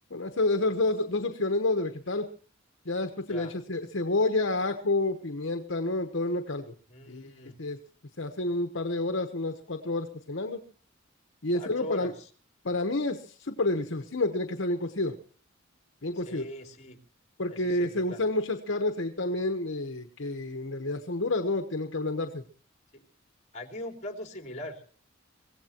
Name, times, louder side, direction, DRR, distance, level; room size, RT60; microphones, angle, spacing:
voice 1, 0.1-2.3 2.8-6.7 7.1-7.3 7.6-7.8 8.2-10.6 11.4-12.1 12.6-15.2 16.0-16.4 17.4-22.4, left 2 dB, 65° left, 7 dB, 1.1 m, -29 dB
voice 2, 6.9-7.6 11.5-12.3 16.1-17.0 17.5-18.2 22.9-23.0 23.5-24.8, left 1 dB, 35° left, 4 dB, 3.0 m, -41 dB
24.0 x 16.5 x 3.0 m, 0.41 s
head